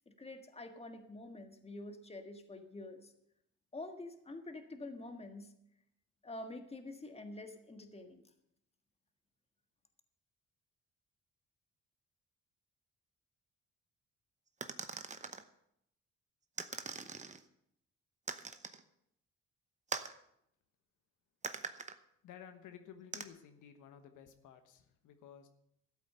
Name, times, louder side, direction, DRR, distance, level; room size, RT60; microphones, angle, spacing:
voice 1, 0.2-3.1 3.7-5.5 6.2-8.2, left 2 dB, 20° left, 6 dB, 1.6 m, -47 dB
sound 1, 14.6-15.4 16.6-17.4 18.3-18.8 19.9-20.2 21.4-22.0 23.1-23.2, right 4 dB, 25° right, 0.9 m, -42 dB
voice 2, 22.2-25.5, left 8 dB, 85° left, 7 dB, 1.2 m, -54 dB
13.0 x 8.3 x 6.7 m, 0.77 s
cardioid pair, 90°, 30 cm